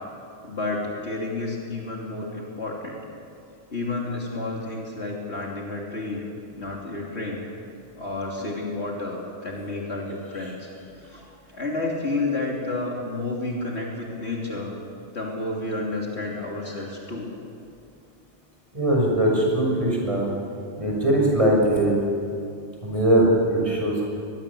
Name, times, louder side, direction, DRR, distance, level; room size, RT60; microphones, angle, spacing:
voice 1, 0.4-3.0 3.7-6.2 6.6-7.4 8.0-11.2 11.5-14.7 15.1-17.3, left 2 dB, 65° left, -2 dB, 3.4 m, -30 dB
voice 2, 18.7-20.3 20.8-22.0 22.8-24.1, right 1 dB, 30° right, -2 dB, 6.4 m, -21 dB
23.0 x 21.0 x 7.0 m, 2.6 s
omnidirectional pair, 1.2 m